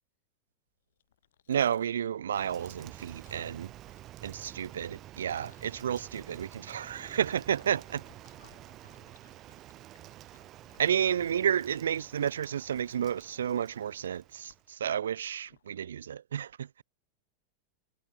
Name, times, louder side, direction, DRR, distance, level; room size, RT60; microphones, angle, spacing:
Chewing mastication, 0.9-15.7, left 11 dB, 60° left, 5.3 m, -65 dB
voice 1, 1.5-3.7 4.2-8.0 10.8-16.8, right 9 dB, 65° right, 0.4 m, -31 dB
Rain, 2.3-14.7, right 14 dB, 35° right, 0.8 m, -50 dB
voice 2, 3.4-4.5 6.0-7.4 8.4-10.9 14.9-15.0 15.5-15.8, left 24 dB, 40° left, 6.9 m, -68 dB
figure-of-eight pair, 90°, 0 cm